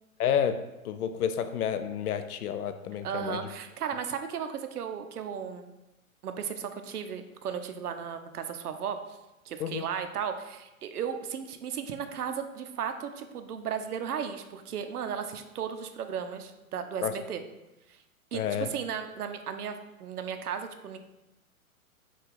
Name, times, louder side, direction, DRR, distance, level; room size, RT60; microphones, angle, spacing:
voice 1, 0.2-0.6 0.8-3.4 9.6-9.8 17.0-17.1 18.3-18.7, left 9 dB, 80° left, 10 dB, 0.5 m, -30 dB
voice 2, 3.0-5.7 6.2-9.0 9.5-17.4 18.3-21.0, right 7 dB, 85° right, 7 dB, 0.6 m, -35 dB
4.7 x 2.3 x 3.7 m, 0.98 s
hypercardioid pair, 120°, 44 cm